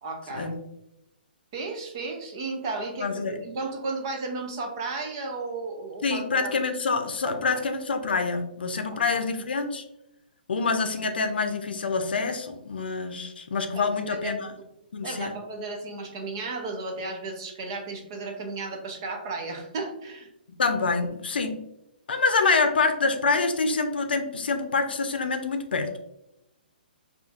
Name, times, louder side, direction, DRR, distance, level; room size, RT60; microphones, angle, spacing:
voice 1, 0.0-0.5 1.5-6.5 7.2-7.6 8.9-9.2 13.7-14.3 15.0-20.3, right 3 dB, 25° right, 3 dB, 0.4 m, -34 dB
voice 2, 3.0-3.4 6.0-9.8 10.5-14.4 14.9-15.3 20.6-21.6 22.1-26.0, left 4 dB, 70° left, 7 dB, 0.5 m, -26 dB
5.0 x 2.4 x 2.4 m, 0.86 s
hypercardioid pair, 175°, 5 cm